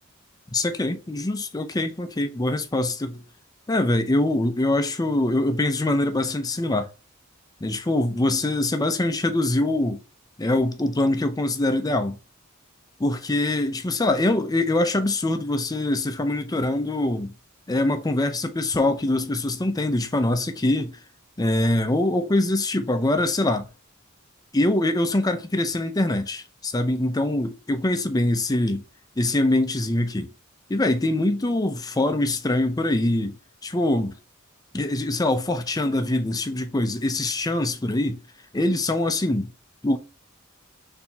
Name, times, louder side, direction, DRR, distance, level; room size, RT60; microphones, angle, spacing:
voice 1, 0.5-3.2 3.7-6.9 7.6-10.0 10.4-12.2 13.0-17.3 17.7-21.0 21.4-23.7 24.5-28.8 29.2-30.3 30.7-33.4 33.6-34.2 34.7-38.2 38.5-39.5 39.8-40.0, left 1 dB, 20° left, 0.5 m, -23 dB
4.3 x 3.4 x 2.7 m
head